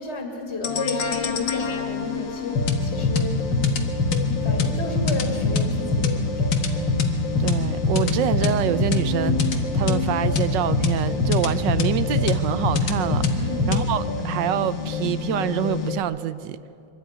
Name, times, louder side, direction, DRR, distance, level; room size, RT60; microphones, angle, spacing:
voice 1, 0.0-3.4 4.2-6.5 13.4-13.8, left 2 dB, 35° left, 2 dB, 2.3 m, -32 dB
sound 1, 0.6-16.0, left 3 dB, 85° left, 2.2 m, -24 dB
voice 2, 7.4-16.6, right 11 dB, 80° right, 15 dB, 1.4 m, -26 dB
23.5 x 13.0 x 9.5 m, 2.6 s
omnidirectional pair, 2.0 m